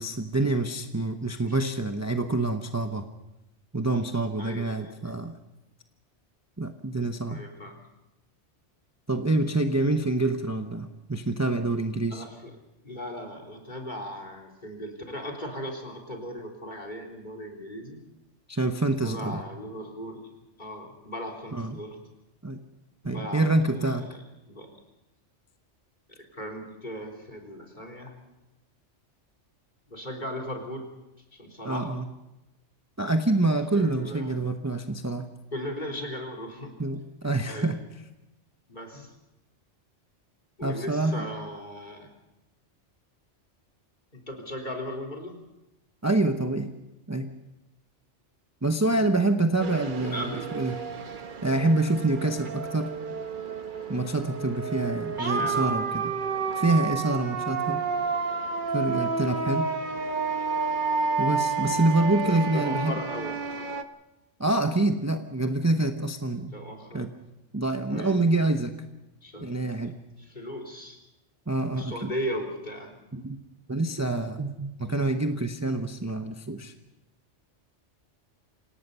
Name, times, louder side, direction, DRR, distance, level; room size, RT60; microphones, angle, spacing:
voice 1, 0.0-3.0 3.7-5.3 6.6-7.4 9.1-12.2 18.5-19.4 21.5-21.8 22.4-22.6 23.0-24.1 31.6-32.0 33.0-35.3 36.8-37.8 40.6-41.2 46.0-46.7 47.1-47.3 48.6-50.8 51.4-52.9 53.9-56.0 56.5-57.8 58.7-59.7 61.2-63.0 64.4-66.5 66.9-67.1 67.5-68.8 69.4-69.9 71.5-72.1 73.1-73.4 73.7-76.7, right 2 dB, 15° right, 6 dB, 0.9 m, -26 dB
voice 2, 4.4-5.1 7.3-7.8 12.1-12.5 12.8-18.0 18.8-20.3 20.6-22.0 23.0-24.7 26.3-28.1 29.9-30.9 31.3-31.9 33.7-34.3 35.5-36.7 37.5-37.7 38.7-39.1 40.6-42.1 44.1-45.4 50.0-50.5 55.1-55.8 57.6-57.9 62.2-63.4 66.5-67.0 67.9-68.3 69.2-69.6 70.2-71.0 71.7-73.0, equal, 40° left, 3 dB, 4.0 m, -37 dB
sound 1, 49.6-63.8, right 4 dB, 45° right, 1.1 m, -30 dB
27.0 x 18.0 x 5.5 m, 0.95 s
omnidirectional pair, 1.2 m